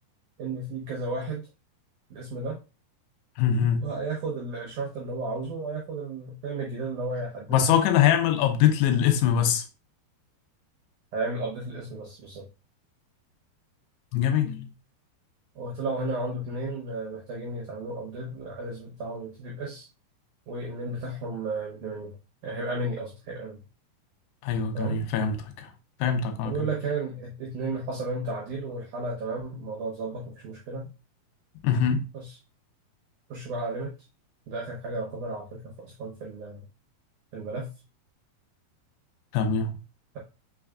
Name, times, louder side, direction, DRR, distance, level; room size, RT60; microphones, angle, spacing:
voice 1, 0.4-1.4 2.1-2.6 3.8-7.8 11.1-12.5 15.5-19.9 20.5-22.2 22.4-23.6 24.7-25.0 26.4-30.9 32.1-32.4 33.3-33.9 34.5-36.6 37.3-37.7, right 2 dB, 80° right, 1.7 m, -33 dB
voice 2, 3.4-3.8 7.5-9.6 14.1-14.7 24.4-25.7 26.0-26.5 31.6-32.0 39.3-39.8, left 8 dB, 85° left, 2.7 m, -23 dB
6.2 x 3.4 x 2.3 m
omnidirectional pair, 4.8 m